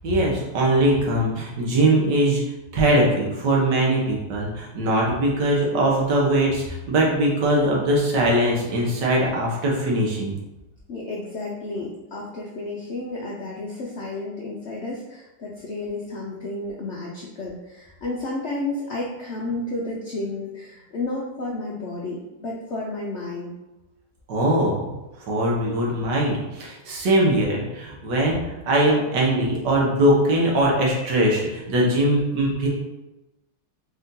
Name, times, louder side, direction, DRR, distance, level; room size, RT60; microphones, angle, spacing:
voice 1, 0.0-2.4 2.7-10.3 24.3-24.8 25.2-32.7, right 1 dB, 80° right, -2 dB, 1.6 m, -21 dB
voice 2, 10.9-23.5, left 2 dB, 70° left, -3 dB, 0.6 m, -31 dB
4.2 x 2.6 x 3.7 m, 1.0 s
omnidirectional pair, 1.9 m